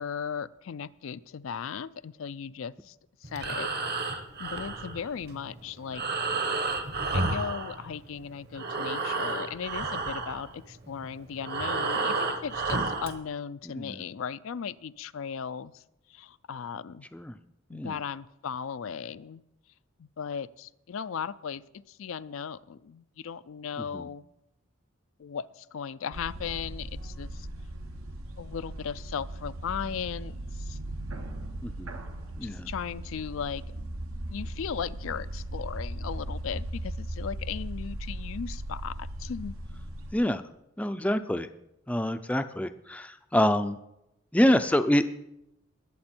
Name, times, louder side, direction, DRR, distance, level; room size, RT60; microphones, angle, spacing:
voice 1, 0.0-3.0 3.2-6.0 7.1-15.8 16.1-17.1 17.7-19.4 20.0-24.2 25.2-27.5 28.4-30.8 32.4-33.6 34.3-39.5, left 7 dB, 70° left, 15 dB, 0.4 m, -37 dB
Breathing, 3.2-8.2 8.5-13.2, right 3 dB, 45° right, 1.1 m, -31 dB
sound 1, 26.1-40.1, right 1 dB, 85° right, 1.4 m, -38 dB
voice 2, 31.6-32.0 32.4-32.7 40.1-40.4 40.8-41.5 41.9-43.8 44.3-45.0, left 1 dB, 5° left, 9 dB, 0.4 m, -26 dB
20.0 x 7.7 x 4.4 m, 0.85 s
head